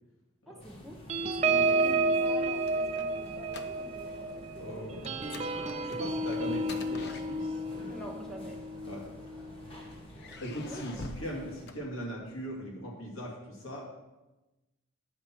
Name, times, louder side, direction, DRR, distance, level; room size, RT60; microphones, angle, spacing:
voice 1, 0.5-1.0 1.4-4.3 4.5-4.9 7.9-8.6 10.7-10.8, equal, ahead, 0 dB, 1.0 m, -45 dB
sound 1, 0.6-11.7, equal, 25° left, 1.3 m, -50 dB
sound 2, 1.1-10.0 10.5-10.7 11.0-11.3, right 3 dB, 30° right, 0.4 m, -31 dB
sound 3, 2.4-4.1 4.4-4.6 5.0-7.8 8.7-9.6 10.1-12.4, left 3 dB, 50° left, 0.5 m, -48 dB
voice 2, 4.5-8.0 8.8-9.1 10.4-13.8, equal, 65° left, -2 dB, 2.2 m, -40 dB
8.4 x 5.9 x 4.5 m, 1.0 s
head